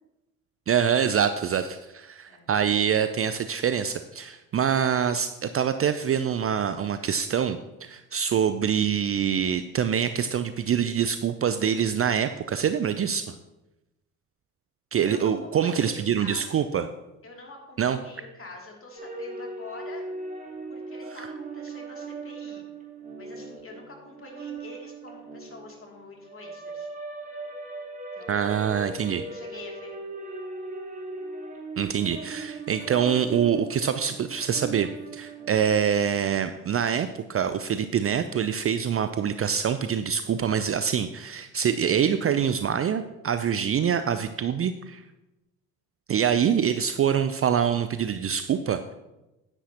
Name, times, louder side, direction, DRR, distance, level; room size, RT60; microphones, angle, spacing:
voice 1, 0.7-13.4 14.9-16.9 17.8-18.0 28.3-29.3 31.8-45.0 46.1-48.9, right 8 dB, 35° right, 10 dB, 0.5 m, -25 dB
voice 2, 15.0-16.7 17.2-20.0 20.7-22.7 23.2-26.9 28.1-28.7 29.0-30.0, left 2 dB, 30° left, 0 dB, 2.9 m, -45 dB
sound 1, 19.0-36.0, right 3 dB, 20° right, 2.7 m, -39 dB
10.0 x 9.8 x 2.9 m, 0.98 s
hypercardioid pair, 50°, 41 cm